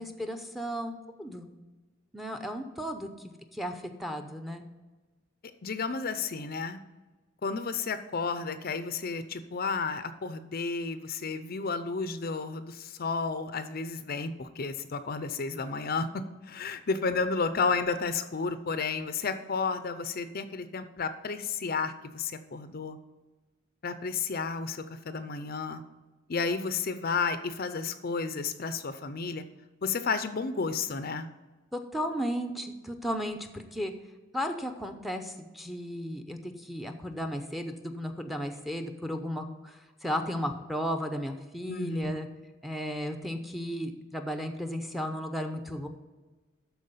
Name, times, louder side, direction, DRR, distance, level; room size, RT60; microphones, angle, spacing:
voice 1, 0.0-1.5 2.1-3.1 3.5-4.6 31.7-33.9 34.3-42.3 42.6-45.9, equal, ahead, 6 dB, 0.7 m, -34 dB
voice 2, 5.6-6.8 7.4-23.0 23.8-25.8 26.3-29.4 29.8-31.3 41.7-42.2, left 4 dB, 50° left, 11 dB, 0.6 m, -32 dB
12.0 x 4.5 x 5.6 m, 1.2 s
head